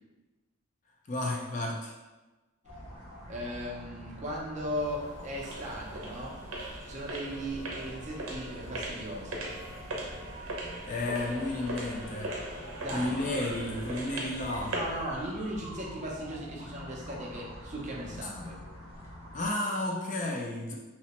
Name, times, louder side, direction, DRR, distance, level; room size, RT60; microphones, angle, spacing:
voice 1, 1.1-1.9 10.8-12.3 12.9-14.7 18.4-18.5 19.3-20.8, left 2 dB, 35° left, -1 dB, 0.3 m, -32 dB
sound 1, 2.6-19.5, equal, 80° left, 0.7 m, -46 dB
voice 2, 3.3-6.4 6.8-9.5 12.8-13.2 14.7-18.6, equal, 35° right, -2 dB, 0.5 m, -37 dB
sound 2, 4.8-15.0, right 1 dB, 80° right, 0.6 m, -40 dB
2.9 x 2.1 x 2.9 m, 1.2 s
head